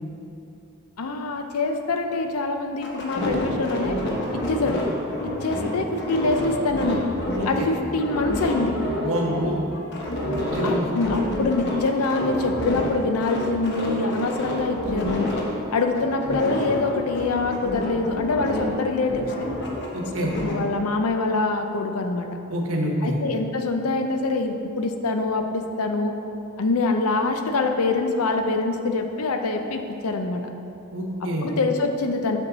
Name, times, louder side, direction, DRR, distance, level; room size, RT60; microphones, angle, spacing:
voice 1, 1.0-4.0 4.3-4.9 5.2-7.1 7.5-8.8 10.6-15.3 15.7-19.3 20.3-22.3 23.0-26.2 26.6-30.4 31.4-32.4, left 3 dB, 90° left, 5 dB, 0.6 m, -25 dB
sound 1, 2.8-7.7 8.0-12.9 13.2-15.4 15.8-18.8 19.0-20.5, left 1 dB, 50° left, 1.0 m, -28 dB
voice 2, 9.0-9.6 10.5-10.8 19.9-20.3 22.5-23.2 30.9-31.5, equal, 70° right, 0 dB, 1.1 m, -26 dB
6.9 x 6.3 x 4.0 m, 2.9 s
head